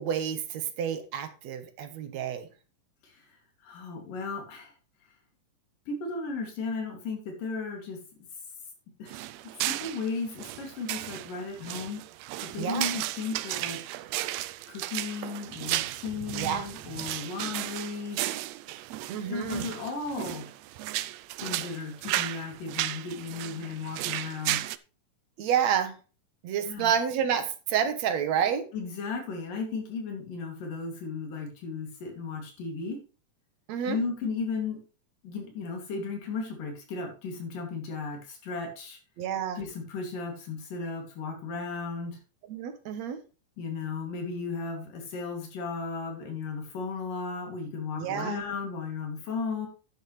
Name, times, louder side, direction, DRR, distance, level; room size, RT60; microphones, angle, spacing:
voice 1, 0.0-2.5 12.6-12.9 16.3-16.7 19.1-19.7 25.4-26.0 26.4-28.7 33.7-34.0 39.2-39.6 42.5-43.2 48.0-48.4, right 8 dB, 65° right, 9 dB, 2.2 m, -29 dB
voice 2, 3.6-4.7 5.9-8.0 9.0-9.2 9.7-12.0 12.5-13.8 14.7-18.2 19.2-20.5 21.4-24.6 26.6-26.9 28.7-33.0 33.9-34.8 35.2-39.0 39.6-42.2 43.6-49.7, left 4 dB, 85° left, 2 dB, 4.3 m, -35 dB
sound 1, 9.1-24.8, right 15 dB, 85° right, 1.5 m, -34 dB
10.5 x 9.7 x 3.2 m, 0.34 s
omnidirectional pair, 3.7 m